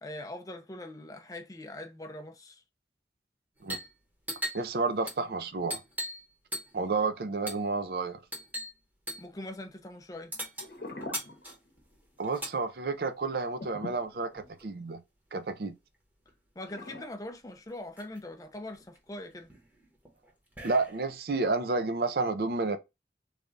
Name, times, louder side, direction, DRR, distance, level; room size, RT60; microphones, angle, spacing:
voice 1, 0.0-2.6 9.2-10.3 16.6-19.5, left 1 dB, 20° left, 0.5 m, -42 dB
sound 1, 3.6-3.9 4.2-6.3 6.5-6.9 7.5-7.7 8.3-8.8 9.1-9.3 10.3-12.6 13.6-14.7 15.9-16.0 16.3-16.9 17.4-17.5 17.7-18.2 18.7-21.2, equal, 10° right, 0.9 m, -40 dB
voice 2, 4.5-5.8 6.7-8.2 12.2-15.0 15.3-15.7 20.6-22.8, right 3 dB, 60° right, 0.5 m, -30 dB
sound 2, 10.6-12.0 12.3-12.5 13.6-14.9 16.6-17.1, left 2 dB, 60° left, 0.8 m, -43 dB
3.3 x 2.3 x 3.8 m
head